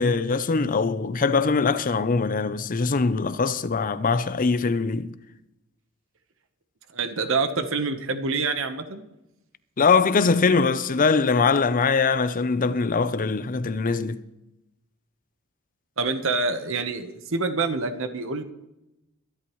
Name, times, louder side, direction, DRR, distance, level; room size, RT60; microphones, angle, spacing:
voice 1, 0.0-5.1 9.8-14.2, left 4 dB, 40° left, 0.6 m, -22 dB
voice 2, 6.9-9.0 16.0-18.4, right 4 dB, 65° right, 1.1 m, -26 dB
23.0 x 11.0 x 3.1 m
head